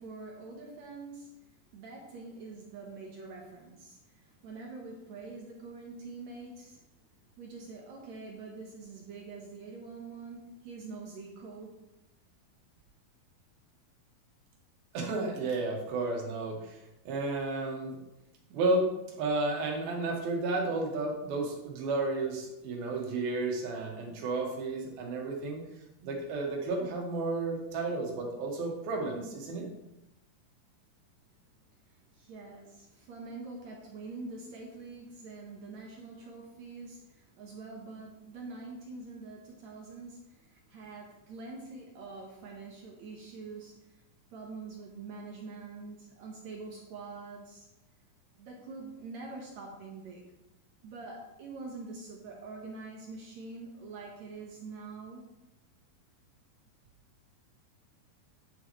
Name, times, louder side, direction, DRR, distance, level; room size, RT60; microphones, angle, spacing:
voice 1, 0.0-6.9 7.4-11.8 31.8-44.0 44.3-47.7 48.4-50.2 50.8-55.3, right 3 dB, 65° right, -1 dB, 2.0 m, -45 dB
voice 2, 14.9-16.8 17.1-18.0 18.5-18.9 19.2-25.6 26.0-29.7, right 2 dB, 80° right, 0 dB, 3.4 m, -32 dB
10.0 x 7.1 x 3.0 m, 0.92 s
omnidirectional pair, 4.2 m